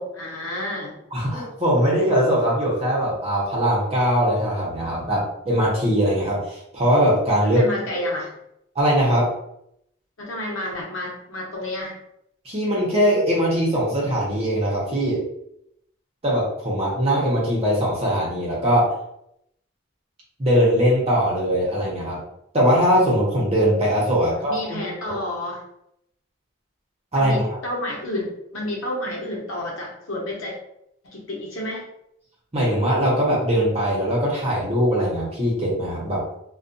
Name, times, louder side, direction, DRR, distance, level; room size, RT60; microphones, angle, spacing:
voice 1, 0.0-1.0 7.4-8.3 10.2-12.0 24.3-25.6 27.1-30.6 31.0-31.9, left 1 dB, 85° left, -2 dB, 0.8 m, -30 dB
voice 2, 1.1-7.6 8.7-9.3 12.4-15.2 16.2-19.0 20.4-22.2 22.5-24.9 27.1-27.5 32.5-36.2, equal, 30° right, -5 dB, 0.8 m, -21 dB
2.4 x 2.3 x 2.6 m, 0.77 s
head